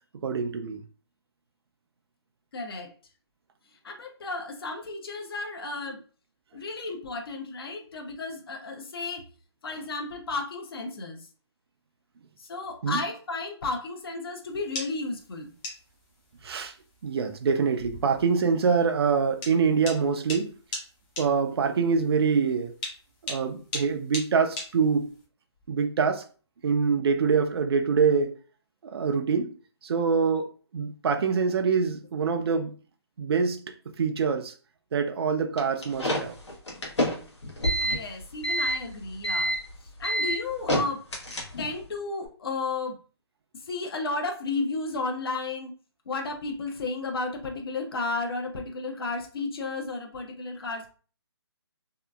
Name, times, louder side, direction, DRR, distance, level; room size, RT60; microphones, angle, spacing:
voice 1, 0.2-0.8 12.8-13.0 16.4-16.7 17.0-20.6 21.2-22.7 23.2-25.1 25.7-26.2 26.6-28.3 28.8-29.5 29.8-30.5 30.7-32.7 33.2-34.5 34.9-36.4, right 5 dB, 65° right, 0.4 m, -25 dB
voice 2, 2.5-2.9 3.8-6.0 6.5-9.3 9.6-11.3 12.4-15.5 37.8-39.5 39.8-41.1 41.6-43.0 43.5-45.7 46.1-50.9, left 3 dB, 60° left, 0.6 m, -33 dB
sound 1, 14.5-25.2, left 2 dB, 15° left, 0.5 m, -40 dB
sound 2, 35.6-41.8, equal, 85° left, 1.0 m, -28 dB
2.8 x 2.4 x 2.2 m
hypercardioid pair, 155°, 14 cm